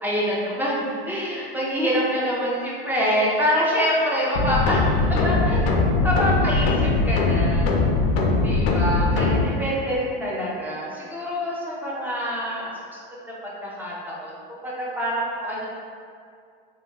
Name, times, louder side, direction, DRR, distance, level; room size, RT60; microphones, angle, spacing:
voice 1, 0.0-5.8 6.0-7.7 8.4-13.0 13.6-14.3 14.6-15.7, equal, 5° right, -6 dB, 0.5 m, -26 dB
sound 1, 4.3-9.4, left 3 dB, 80° left, 0.5 m, -21 dB
3.0 x 2.1 x 2.8 m, 2.3 s
supercardioid pair, 110°, 30 cm